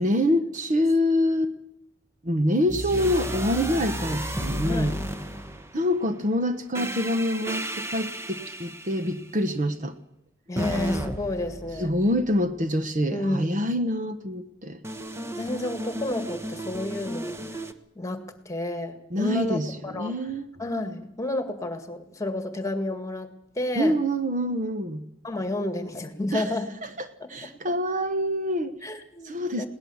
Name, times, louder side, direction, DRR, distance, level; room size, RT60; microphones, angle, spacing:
voice 1, 0.0-1.5 2.2-5.0 5.7-9.9 11.8-14.8 19.1-20.5 23.7-25.0 26.3-26.4 26.8-28.7 29.2-29.7, equal, 40° right, 9 dB, 1.1 m, -26 dB
sound 1, 2.7-6.0 6.8-9.3 10.6-12.6 14.8-17.7, right 1 dB, 15° right, 1.1 m, -33 dB
voice 2, 4.6-5.0 10.5-11.9 13.1-13.5 15.4-17.4 18.0-20.2 20.6-23.3 23.6-24.0 25.2-26.7 27.2-27.3 28.8-29.7, left 1 dB, 15° left, 8 dB, 2.0 m, -30 dB
21.5 x 18.5 x 7.2 m, 0.78 s
head